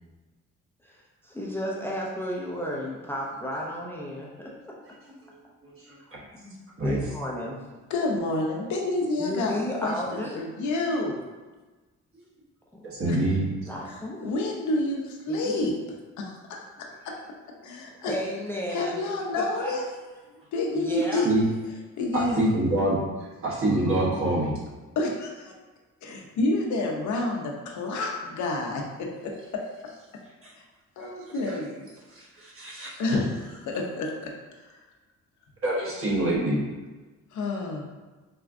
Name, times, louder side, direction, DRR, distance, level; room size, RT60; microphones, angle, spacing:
voice 1, 0.8-4.7 6.4-7.6 9.2-10.4 13.7-14.2 15.3-15.6 18.1-19.0 19.4-19.7 20.7-21.3, equal, 10° left, -4 dB, 0.5 m, -33 dB
voice 2, 5.6-6.0 6.8-7.0 12.8-13.5 21.2-21.4 22.1-24.5 30.4-30.5 31.0-31.1 31.5-31.6 32.1-33.0 35.6-36.6, right 1 dB, 45° right, -5 dB, 1.1 m, -26 dB
voice 3, 7.9-11.2 13.1-13.2 13.9-15.8 16.2-16.6 17.0-17.2 17.6-18.1 18.7-19.8 20.5-21.3 22.0-22.6 25.0-25.5 26.0-29.6 31.0-31.9 33.0-34.3 34.7-34.8 37.3-37.9, left 2 dB, 70° left, 0 dB, 0.7 m, -29 dB
4.3 x 2.3 x 2.5 m, 1.2 s
cardioid pair, 90°, 30 cm